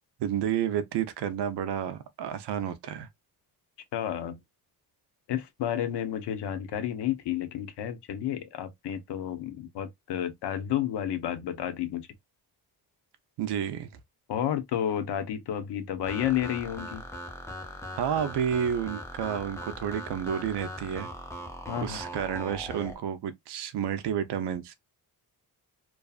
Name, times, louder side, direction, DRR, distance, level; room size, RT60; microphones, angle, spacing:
voice 1, 0.2-3.1 13.4-13.9 17.9-21.1 21.8-24.7, right 9 dB, 80° right, 0.6 m, -30 dB
voice 2, 3.9-4.4 5.3-12.1 14.3-17.0 21.7-22.0, left 10 dB, 80° left, 0.7 m, -31 dB
sound 1, 16.0-23.0, equal, 5° left, 0.4 m, -40 dB
2.6 x 2.4 x 2.3 m
wide cardioid pair, 170°, 40 cm